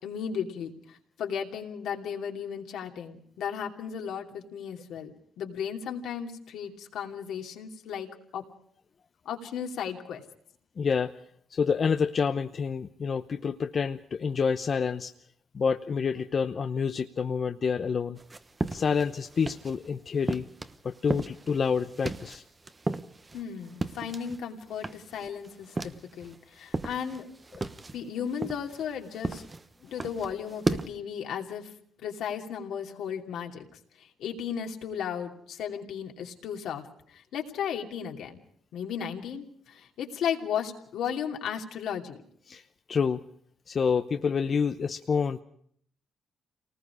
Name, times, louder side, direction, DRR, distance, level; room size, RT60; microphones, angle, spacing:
voice 1, 0.0-8.1 8.3-8.4 9.2-10.2 23.3-27.3 27.9-29.4 29.9-31.7 32.0-38.4 38.7-42.2, left 8 dB, 80° left, 2 dB, 2.8 m, -35 dB
voice 2, 10.8-11.1 11.5-15.1 15.5-18.2 18.7-20.5 20.8-22.4 42.5-42.6 42.9-43.2 43.7-45.4, left 6 dB, 45° left, 7 dB, 0.8 m, -28 dB
sound 1, 18.2-19.9 20.2-24.4 24.7-26.4 26.7-30.9, right 3 dB, 25° right, 1.1 m, -35 dB
28.0 x 19.5 x 4.9 m, 0.63 s
cardioid pair, 90°, 0 cm